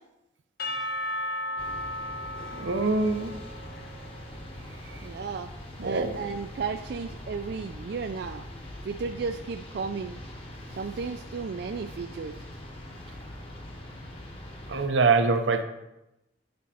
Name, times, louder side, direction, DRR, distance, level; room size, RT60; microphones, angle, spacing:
Percussion / Church bell, 0.6-4.7, left 1 dB, 50° left, 0.8 m, -35 dB
sound 1, 1.6-14.9, left 1 dB, 30° left, 1.1 m, -42 dB
voice 1, 2.5-3.3 4.9-5.0 5.8-6.2 14.7-15.6, right 4 dB, 85° right, 7 dB, 0.7 m, -24 dB
voice 2, 5.0-5.5 5.8-8.4 8.8-10.2 10.8-12.3, right 5 dB, 60° right, 6 dB, 0.3 m, -34 dB
9.4 x 5.1 x 4.2 m, 0.91 s
head